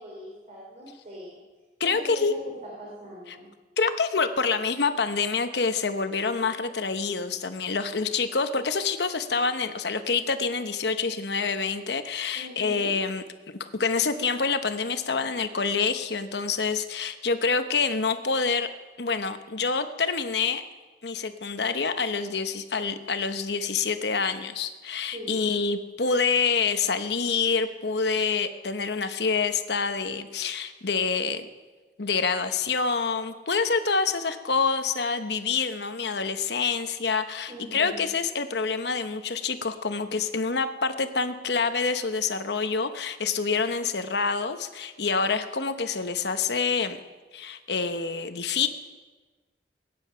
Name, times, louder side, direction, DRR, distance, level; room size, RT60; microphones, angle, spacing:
voice 1, 0.0-1.4 1.8-3.5 12.3-12.9 25.1-25.6 37.5-38.1, equal, 40° right, -4 dB, 3.0 m, -41 dB
voice 2, 1.8-2.3 3.8-18.7 19.0-20.6 21.0-31.5 32.0-47.0 47.3-48.7, left 5 dB, 65° left, 9 dB, 1.0 m, -27 dB
21.0 x 9.7 x 5.6 m, 1.3 s
head